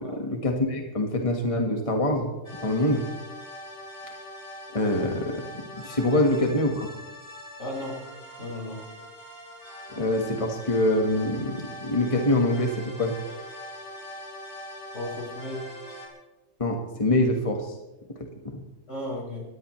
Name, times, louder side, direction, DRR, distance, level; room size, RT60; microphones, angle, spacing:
voice 1, 0.0-2.3 2.6-3.1 4.7-6.9 9.9-13.1 16.6-17.8 18.2-18.6, left 1 dB, 25° left, 2 dB, 1.6 m, -25 dB
sound 1, 2.4-16.1, left 1 dB, 15° right, 6.4 m, -42 dB
voice 2, 7.6-8.0 8.4-8.8 14.9-15.6 18.9-19.4, left 1 dB, 70° left, -4 dB, 6.3 m, -34 dB
25.0 x 18.0 x 3.2 m, 1.0 s
omnidirectional pair, 1.3 m